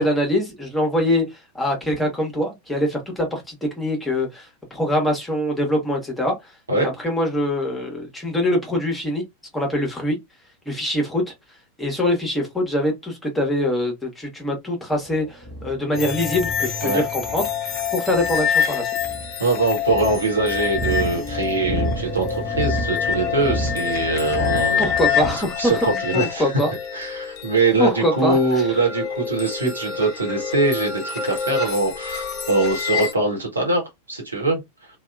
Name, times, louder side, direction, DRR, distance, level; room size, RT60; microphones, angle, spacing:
voice 1, 0.0-6.5 6.8-9.2 9.5-10.2 10.7-11.3 11.8-17.5 17.9-19.0 24.8-26.7 27.8-28.8, left 1 dB, 5° left, 1.1 m, -23 dB
sound 1, 14.9-25.3, right 1 dB, 20° right, 0.9 m, -31 dB
sound 2, 16.0-33.1, left 8 dB, 35° left, 0.6 m, -27 dB
voice 2, 19.4-24.9 25.3-26.4 26.9-34.6, right 3 dB, 75° right, 1.1 m, -22 dB
2.7 x 2.4 x 2.3 m
figure-of-eight pair, 90°, 0 cm